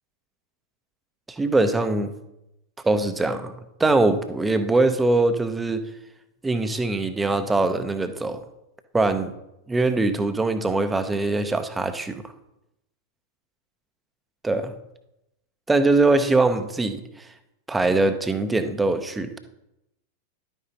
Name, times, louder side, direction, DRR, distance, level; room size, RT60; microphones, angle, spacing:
voice 1, 1.3-2.1 2.8-3.5 3.8-5.8 6.4-8.4 8.9-9.3 9.7-12.2 14.4-14.7 15.7-17.3 17.7-19.4, right 2 dB, 10° right, 9 dB, 0.8 m, -22 dB
11.0 x 9.0 x 2.9 m, 0.89 s
figure-of-eight pair, 90°, 0 cm